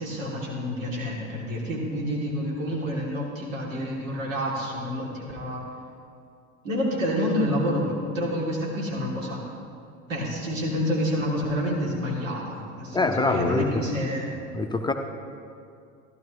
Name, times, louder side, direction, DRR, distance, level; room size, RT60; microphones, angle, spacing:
voice 1, 0.0-5.7 6.6-9.5 10.1-14.3, equal, 80° right, -3 dB, 2.9 m, -28 dB
voice 2, 12.9-13.6 14.5-14.9, left 3 dB, 10° left, 4 dB, 0.7 m, -24 dB
15.0 x 12.0 x 3.1 m, 2.3 s
hypercardioid pair, 75°, 38 cm